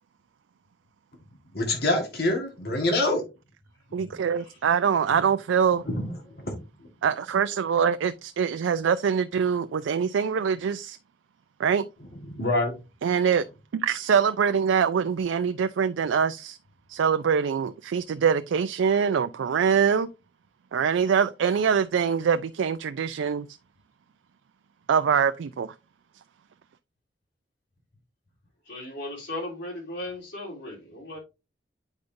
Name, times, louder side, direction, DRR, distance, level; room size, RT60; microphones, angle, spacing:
voice 1, 1.5-3.2 3.9-4.1 5.8-6.5 12.3-12.8, left 1 dB, 55° left, 1.6 m, -26 dB
voice 2, 3.9-5.8 7.0-11.0 11.6-11.8 13.0-13.4 13.7-16.6 16.9-20.1 20.7-23.5 24.9-25.7, right 7 dB, 90° right, 0.4 m, -24 dB
voice 3, 28.7-31.2, left 1 dB, 75° left, 3.5 m, -36 dB
8.2 x 5.1 x 2.6 m
head